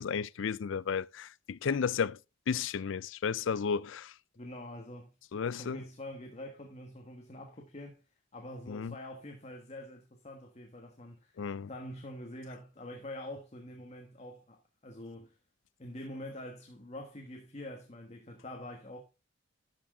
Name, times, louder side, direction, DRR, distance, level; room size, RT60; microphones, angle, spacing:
voice 1, 0.0-2.2 2.5-4.1 5.3-5.8 8.7-8.9 11.4-11.7, left 6 dB, 70° left, 0.4 m, -33 dB
voice 2, 4.3-5.1 5.6-8.0 8.3-11.4 11.7-15.4 15.8-19.0, left 1 dB, 35° left, 1.3 m, -45 dB
12.0 x 6.2 x 3.6 m
head